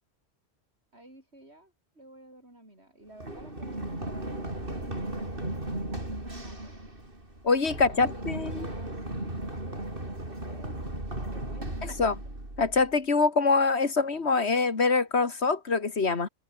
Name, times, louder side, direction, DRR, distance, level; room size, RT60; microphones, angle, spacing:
voice 1, 0.9-6.8 7.7-9.0 9.5-12.2, right 1 dB, 80° right, 8.5 m, -53 dB
Run, 3.2-12.9, right 1 dB, 55° right, 6.4 m, -36 dB
voice 2, 7.4-8.7 11.8-12.2 12.6-16.3, left 4 dB, 85° left, 2.3 m, -25 dB
open air
omnidirectional pair, 1.1 m